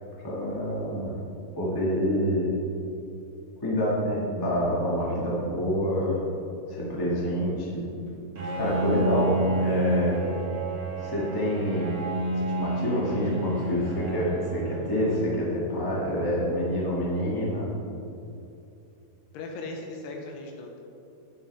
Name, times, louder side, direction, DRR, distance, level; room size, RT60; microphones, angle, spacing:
voice 1, 0.2-1.1 1.6-2.5 3.6-6.2 6.7-7.8 8.5-10.2 11.0-11.9 12.3-17.7, equal, 20° left, -6 dB, 0.6 m, -27 dB
Bowed string instrument, 8.3-15.5, right 1 dB, 40° right, 2.1 m, -30 dB
voice 2, 19.3-20.8, left 2 dB, 85° left, 1 dB, 3.1 m, -38 dB
11.0 x 9.4 x 3.5 m, 2.7 s
omnidirectional pair, 4.6 m